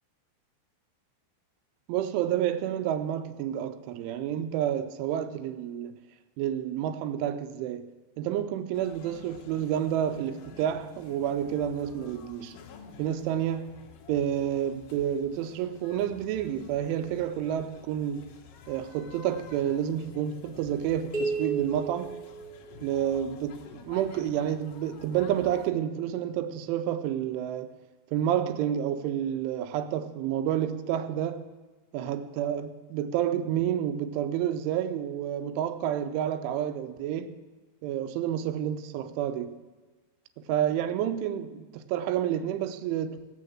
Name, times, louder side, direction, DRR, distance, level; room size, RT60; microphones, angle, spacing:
voice 1, 1.9-5.9 6.4-7.9 8.2-12.6 13.0-13.8 14.1-18.3 18.7-22.2 22.8-27.7 28.1-31.5 31.9-37.4 37.8-39.6 40.5-43.3, right 10 dB, 90° right, 3.2 m, -29 dB
sound 1, 8.7-25.7, left 6 dB, 80° left, 1.9 m, -50 dB
sound 2, 21.1-23.1, right 4 dB, ahead, 2.5 m, -33 dB
16.0 x 6.6 x 7.3 m
omnidirectional pair, 5.4 m